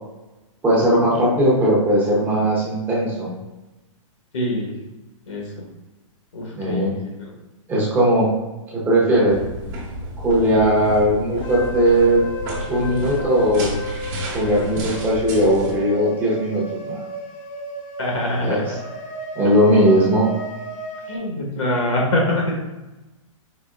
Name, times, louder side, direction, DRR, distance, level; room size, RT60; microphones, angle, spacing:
voice 1, 0.6-3.3 6.6-6.9 7.7-8.3 8.7-9.4 10.2-12.2 12.7-13.8 14.3-17.0 18.4-18.6 19.4-20.3, right 1 dB, 10° right, -5 dB, 0.8 m, -18 dB
voice 2, 4.3-4.7 5.3-5.7 6.3-7.3 18.0-18.8 21.1-22.6, left 1 dB, 70° left, -2 dB, 1.2 m, -24 dB
sound 1, 9.3-15.7, right 1 dB, 35° right, 1.0 m, -31 dB
sound 2, 11.4-21.2, right 2 dB, 30° left, 0.6 m, -34 dB
5.0 x 3.4 x 2.4 m, 1.1 s
hypercardioid pair, 165°, 17 cm